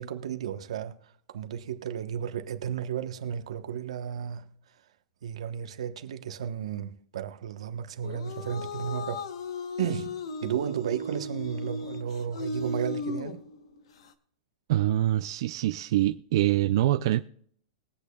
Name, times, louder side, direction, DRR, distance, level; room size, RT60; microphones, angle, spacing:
voice 1, 0.0-4.5 5.2-9.2 9.8-13.4, right 8 dB, 75° right, 1.1 m, -33 dB
sound 1, 8.0-14.1, left 3 dB, 65° left, 1.1 m, -36 dB
voice 2, 14.7-17.2, right 14 dB, 45° right, 0.4 m, -25 dB
21.5 x 8.4 x 2.3 m
supercardioid pair, 175°, 3 cm